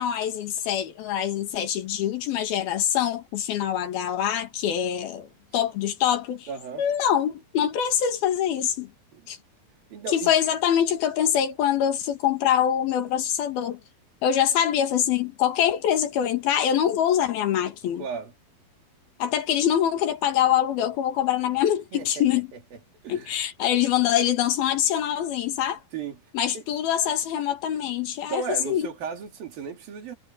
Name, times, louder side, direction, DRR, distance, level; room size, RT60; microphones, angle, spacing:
voice 1, 0.0-5.3 5.5-6.5 6.8-8.9 9.3-9.4 10.1-13.8 14.2-18.0 19.2-22.5 23.1-25.8 26.3-28.9, left 10 dB, 90° left, 3.9 m, -24 dB
voice 2, 6.5-6.8 9.1-9.2 9.9-10.3 18.0-18.3 21.9-22.2 23.0-23.3 25.9-26.2 26.5-26.6 28.3-30.2, right 6 dB, 75° right, 5.0 m, -34 dB
omnidirectional pair, 4.2 m